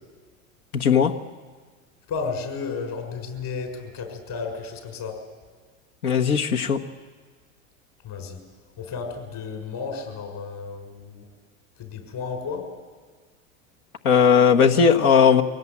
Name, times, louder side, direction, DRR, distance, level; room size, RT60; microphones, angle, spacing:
voice 1, 0.7-1.1 6.0-6.8 14.0-15.4, left 7 dB, 85° left, 4 dB, 1.6 m, -17 dB
voice 2, 2.1-5.2 8.0-8.4 8.8-11.2 11.8-12.6, left 5 dB, 50° left, 4 dB, 6.1 m, -33 dB
24.0 x 17.5 x 8.7 m, 1.5 s
hypercardioid pair, 105°, 42 cm